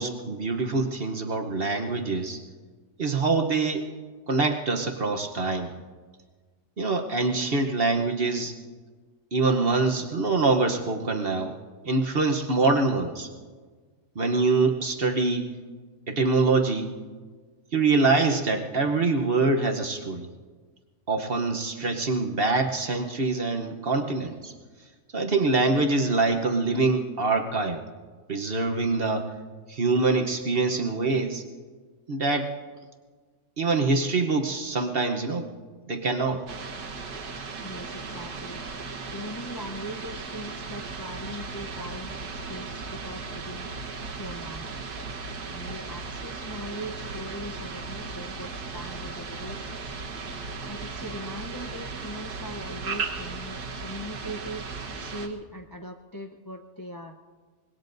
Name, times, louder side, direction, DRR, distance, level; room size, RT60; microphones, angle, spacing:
voice 1, 0.0-2.4 3.0-3.9 4.3-5.8 6.8-8.6 9.3-11.6 11.8-13.3 14.1-15.6 16.1-17.0 17.7-20.3 21.1-24.5 25.1-27.8 28.3-29.3 29.7-31.4 32.1-32.6 33.6-35.5 35.9-36.4, right 3 dB, 45° right, 4 dB, 1.0 m, -25 dB
sound 1, 36.5-55.3, right 4 dB, 75° right, 1.8 m, -36 dB
voice 2, 37.6-38.6 39.1-43.7 44.2-44.7 45.5-50.0 50.7-54.6 55.0-57.2, equal, 25° left, 3 dB, 0.4 m, -40 dB
25.0 x 21.0 x 2.6 m, 1.5 s
omnidirectional pair, 1.7 m